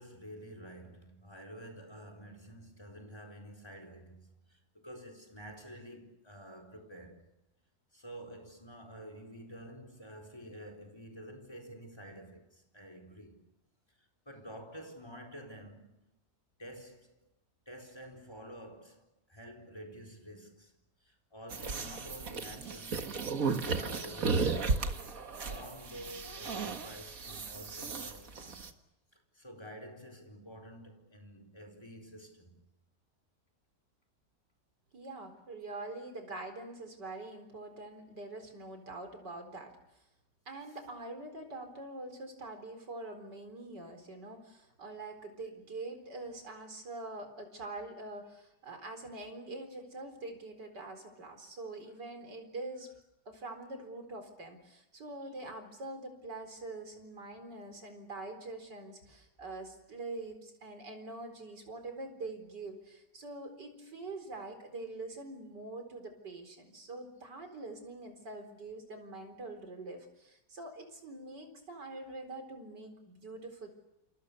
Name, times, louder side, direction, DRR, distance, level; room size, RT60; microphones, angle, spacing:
voice 1, 0.0-7.3 7.9-13.4 14.0-16.1 16.6-17.2 17.7-20.7 21.0-24.9 25.4-28.7 29.1-32.6 50.8-50.9 57.6-57.8 59.1-59.2, equal, 15° left, 4.5 m, -49 dB
sound 1, 21.5-28.7, right 4 dB, 50° right, 2.1 m, -35 dB
voice 2, 34.9-39.7 40.5-52.9 53.3-73.7, right 2 dB, 75° right, 4.9 m, -44 dB
28.5 x 28.5 x 6.9 m
omnidirectional pair, 1.9 m